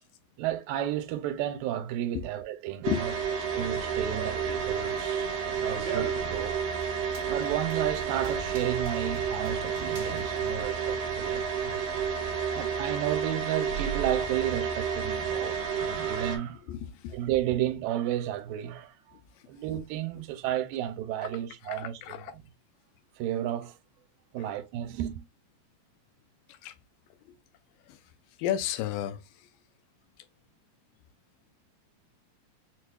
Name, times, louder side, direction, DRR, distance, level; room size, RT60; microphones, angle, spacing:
voice 1, 0.4-3.1 3.5-6.7 7.3-11.8 12.5-16.6 17.1-19.2 19.5-22.4 23.2-23.8 24.3-25.2, right 12 dB, 90° right, 2.3 m, -33 dB
sound 1, 2.8-16.4, right 6 dB, 70° right, 1.5 m, -31 dB
Run, 3.5-11.2, right 6 dB, 40° right, 1.4 m, -43 dB
voice 2, 16.7-17.1 21.7-22.3 26.6-26.7 28.4-29.2, left 10 dB, 85° left, 2.2 m, -32 dB
5.9 x 2.4 x 2.2 m
omnidirectional pair, 3.9 m